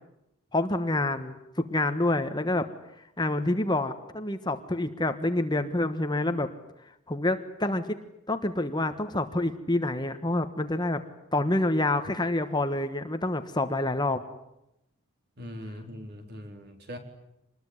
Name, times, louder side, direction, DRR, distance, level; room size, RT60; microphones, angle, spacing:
voice 1, 0.5-2.6 3.2-6.5 7.1-8.0 8.3-11.0 11.3-14.2, left 2 dB, 20° left, 8 dB, 1.3 m, -27 dB
voice 2, 15.4-17.0, equal, 45° right, 5 dB, 4.3 m, -41 dB
27.0 x 21.0 x 9.8 m, 0.86 s
head